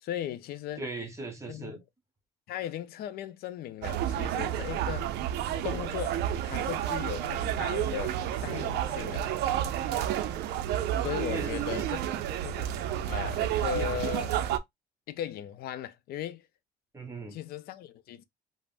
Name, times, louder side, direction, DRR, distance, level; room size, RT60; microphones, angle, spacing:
voice 1, 0.0-0.8 1.5-1.8 2.5-5.1 5.6-9.2 10.9-12.7 13.1-14.4 15.1-16.5 17.3-18.2, left 11 dB, 65° left, 0.4 m, -37 dB
voice 2, 0.8-1.8 11.3-11.9 16.9-17.4, right 3 dB, 15° right, 0.8 m, -38 dB
sound 1, 3.8-14.6, right 11 dB, 80° right, 0.4 m, -30 dB
3.3 x 2.0 x 2.4 m
cardioid pair, 110°, 17 cm